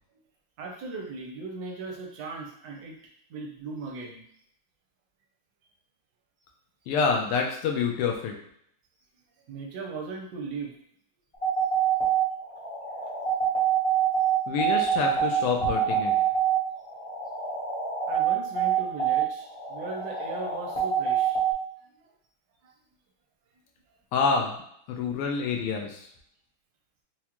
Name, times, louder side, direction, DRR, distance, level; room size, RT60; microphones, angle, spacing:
voice 1, 0.6-2.9 3.3-4.2 9.5-10.7 18.1-21.4 22.6-22.7, right 3 dB, 75° right, -1 dB, 0.9 m, -38 dB
voice 2, 6.9-8.3 14.5-16.1 24.1-24.6 24.9-26.1, left 5 dB, 85° left, 1 dB, 1.6 m, -27 dB
sound 1, 11.3-21.5, right 8 dB, 45° left, 0.4 m, -26 dB
4.7 x 2.1 x 2.9 m, 0.68 s
omnidirectional pair, 2.4 m